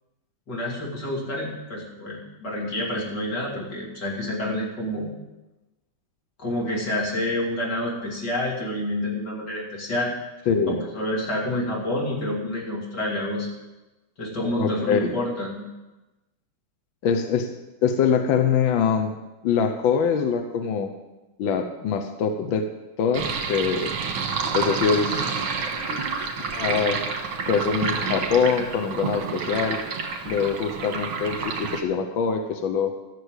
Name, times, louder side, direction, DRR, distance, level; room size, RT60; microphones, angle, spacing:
voice 1, 0.5-5.1 6.4-10.1 10.7-13.5 14.2-15.7, left 1 dB, 55° left, -3 dB, 3.5 m, -28 dB
voice 2, 10.5-10.8 14.6-15.1 17.0-17.5 17.8-19.1 19.4-20.9 21.4-22.7 23.0-23.9 24.5-25.5 26.5-27.0 27.5-29.8 30.2-32.9, left 6 dB, 75° left, 6 dB, 1.6 m, -23 dB
Sink (filling or washing), 23.1-31.8, right 5 dB, 90° right, 2.1 m, -29 dB
14.0 x 6.7 x 8.1 m, 1.1 s
omnidirectional pair, 2.2 m